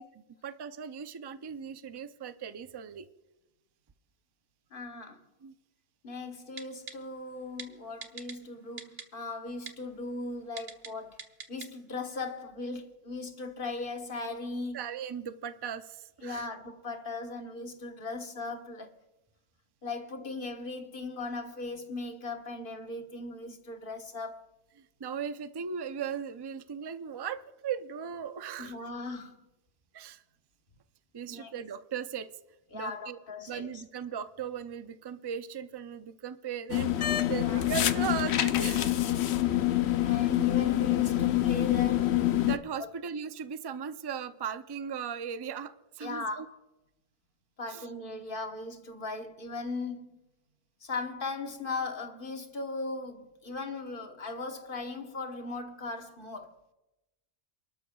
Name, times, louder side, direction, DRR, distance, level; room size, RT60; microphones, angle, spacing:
voice 1, 0.0-3.1 5.4-5.5 14.7-16.5 18.0-18.1 24.8-28.7 29.9-30.2 31.1-32.3 32.7-33.2 33.5-39.0 42.5-46.5 47.7-47.8, right 7 dB, 35° right, 0.4 m, -38 dB
voice 2, 4.7-5.2 6.0-11.2 11.5-14.8 16.2-18.9 19.8-24.4 28.6-29.3 31.3-31.6 32.7-33.8 37.3-37.6 40.0-42.2 42.8-42.9 46.0-46.6 47.6-50.1 50.8-56.6, left 3 dB, 55° left, 1.4 m, -38 dB
Typing, 6.6-6.9 7.6-7.7 8.0-8.3 8.8-9.0 9.7-9.8 10.6-10.9 11.2-11.7 12.0-12.1, right 5 dB, 70° right, 1.3 m, -41 dB
sound 1, 36.7-42.6, left 13 dB, 80° left, 0.9 m, -26 dB
29.0 x 12.5 x 2.3 m
omnidirectional pair, 1.1 m